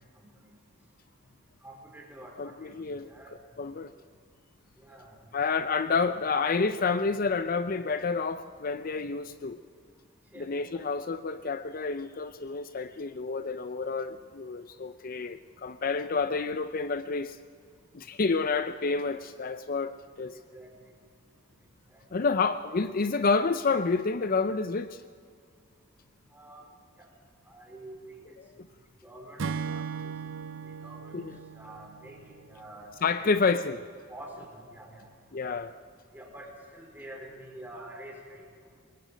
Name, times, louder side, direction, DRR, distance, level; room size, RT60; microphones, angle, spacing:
voice 1, 0.2-0.5 1.6-2.7 3.0-3.3 4.8-5.2 10.3-10.5 18.3-18.4 20.3-20.7 21.9-22.0 26.3-26.7 27.0-27.1 27.5-28.0 28.3-28.6 29.0-29.8 30.6-31.3 31.5-32.2 32.5-33.2 34.1-35.1 36.1-36.5 36.7-38.5, right 1 dB, 10° right, -1 dB, 4.6 m, -47 dB
voice 2, 2.4-3.1 3.6-3.9 5.3-9.6 10.4-17.4 17.9-20.3 22.1-25.0 31.1-31.4 33.0-33.9 35.3-35.7, left 4 dB, 45° left, 12 dB, 0.5 m, -29 dB
Acoustic guitar / Strum, 29.4-32.8, right 6 dB, 75° right, 0.6 m, -37 dB
25.0 x 21.5 x 5.1 m, 2.2 s
head